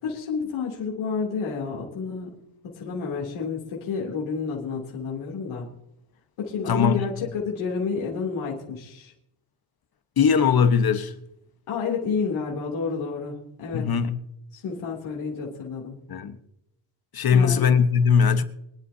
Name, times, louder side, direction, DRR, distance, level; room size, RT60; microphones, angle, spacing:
voice 1, 0.0-2.4 2.6-5.7 6.4-9.1 11.7-13.9 14.5-16.0 17.2-17.7, left 5 dB, 85° left, 3.2 m, -30 dB
voice 2, 6.7-7.0 10.2-11.1 13.7-14.2 16.1-16.4 17.1-18.4, left 6 dB, 50° left, 1.4 m, -20 dB
24.0 x 11.5 x 2.9 m
cardioid pair, 130°, 48 cm